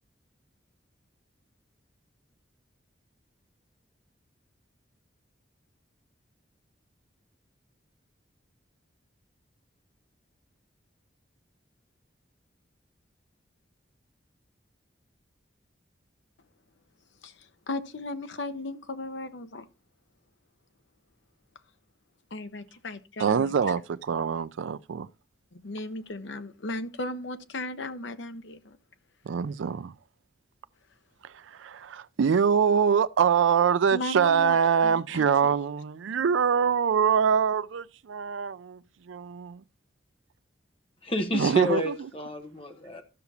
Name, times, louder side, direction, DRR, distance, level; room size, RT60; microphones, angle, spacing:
voice 1, 17.7-19.6 22.3-23.5 25.5-28.8 33.9-34.6 34.8-35.5, left 2 dB, 75° left, 0.8 m, -36 dB
voice 2, 23.2-25.1 29.3-29.9 31.2-38.8 39.1-39.6 41.3-41.9, right 7 dB, 85° right, 0.4 m, -24 dB
voice 3, 41.0-43.0, left 1 dB, 30° left, 1.0 m, -30 dB
13.0 x 5.9 x 2.7 m
head